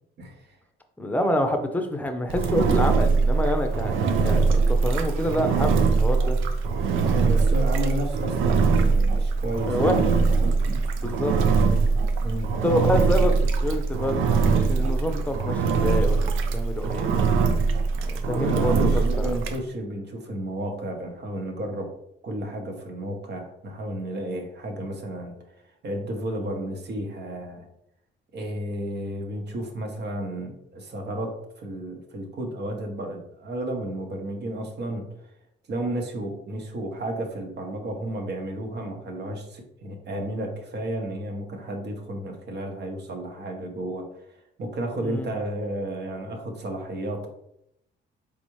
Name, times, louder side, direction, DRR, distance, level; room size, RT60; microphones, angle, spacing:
voice 1, 0.2-0.6 7.0-10.1 10.4-10.8 12.2-12.5 18.2-21.9 22.2-27.7 28.3-35.1 35.7-47.3, right 1 dB, 60° right, 2 dB, 1.1 m, -32 dB
voice 2, 1.0-6.4 9.7-10.0 11.0-11.4 12.6-17.2 18.0-19.3 45.0-45.3, left 1 dB, 10° left, 6 dB, 0.6 m, -27 dB
Engine, 2.3-19.6, right 4 dB, 85° right, 0.6 m, -22 dB
4.1 x 3.6 x 3.1 m, 0.77 s
cardioid pair, 90°, 20 cm